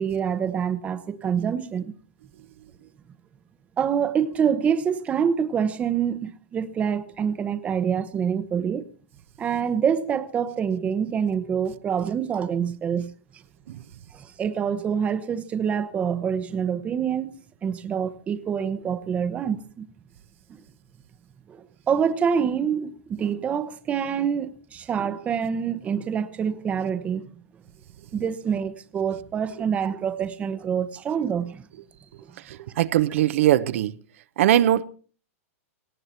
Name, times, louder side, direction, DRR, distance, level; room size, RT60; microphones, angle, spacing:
voice 1, 0.0-1.9 3.8-8.9 9.4-13.4 14.1-17.3 17.6-19.9 20.5-20.6 21.5-27.3 28.1-31.7, right 7 dB, 15° right, 0.9 m, -26 dB
voice 2, 32.4-34.0 34.4-34.8, right 12 dB, 60° right, 0.8 m, -21 dB
18.0 x 17.5 x 4.4 m
hypercardioid pair, 150°, 8 cm